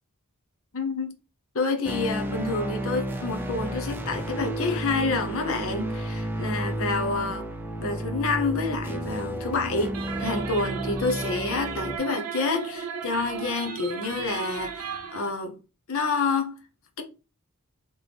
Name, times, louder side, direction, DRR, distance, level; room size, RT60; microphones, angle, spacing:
voice 1, 0.7-1.1 1.5-7.5 7.8-15.6 15.9-16.6, left 3 dB, 65° left, 0.8 m, -28 dB
sound 1, 1.8-12.0, right 1 dB, 10° right, 0.6 m, -32 dB
sound 2, 9.9-15.3, right 7 dB, 90° right, 0.8 m, -35 dB
4.4 x 3.1 x 3.4 m
head